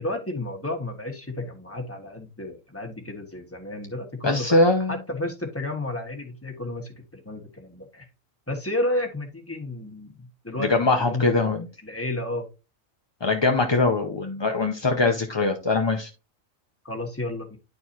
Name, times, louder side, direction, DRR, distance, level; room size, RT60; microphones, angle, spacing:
voice 1, 0.0-4.6 4.9-6.9 7.2-8.1 8.5-11.5 11.8-12.5 16.8-17.6, left 1 dB, 10° left, 1.5 m, -32 dB
voice 2, 4.2-5.0 10.6-11.7 13.2-16.1, left 3 dB, 30° left, 0.5 m, -22 dB
10.5 x 4.6 x 2.8 m
omnidirectional pair, 1.4 m